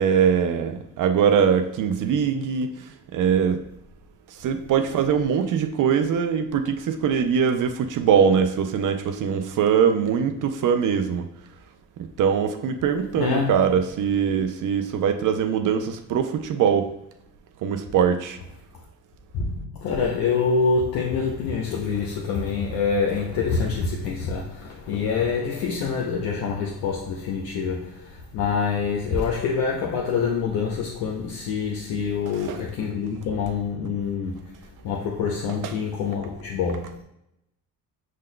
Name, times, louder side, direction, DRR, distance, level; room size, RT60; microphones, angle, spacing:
voice 1, 0.0-2.8 3.1-3.6 4.3-11.3 12.0-16.9 17.6-18.4 32.3-32.6 35.6-35.7, right 7 dB, 60° right, 0.5 m, -22 dB
voice 2, 13.2-13.5 19.3-34.4 34.8-37.0, left 5 dB, 80° left, 0.7 m, -26 dB
6.3 x 3.8 x 2.2 m
cardioid pair, 95°, 35 cm